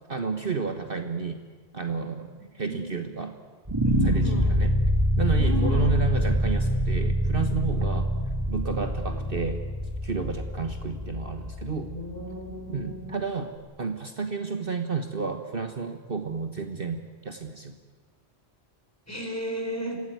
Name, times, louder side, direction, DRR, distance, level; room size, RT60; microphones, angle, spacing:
voice 1, 0.1-1.4 1.7-3.4 4.0-4.7 5.2-8.1 8.5-9.6 10.0-11.9 12.7-13.5 13.8-17.8, right 4 dB, 45° right, 6 dB, 1.5 m, -31 dB
voice 2, 2.7-3.0 3.8-4.7 5.4-6.0 9.0-9.4 11.7-13.3 19.1-20.0, equal, 10° left, 2 dB, 4.6 m, -34 dB
sound 1, 3.7-12.8, equal, 20° right, 2.2 m, -26 dB
26.0 x 18.0 x 9.4 m, 1.5 s
omnidirectional pair, 1.3 m